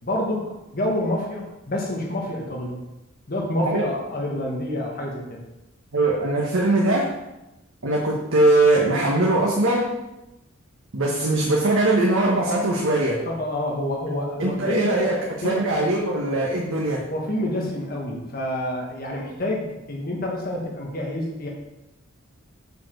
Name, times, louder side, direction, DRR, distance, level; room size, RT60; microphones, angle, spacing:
voice 1, 0.0-2.8 3.3-5.4 13.2-14.9 15.4-15.6 17.1-21.5, left 1 dB, 45° left, -1 dB, 1.5 m, -28 dB
voice 2, 5.9-7.1 7.8-9.9 10.9-13.2 14.4-17.0, right 2 dB, 90° right, -3 dB, 1.3 m, -21 dB
7.0 x 5.0 x 6.4 m, 0.97 s
head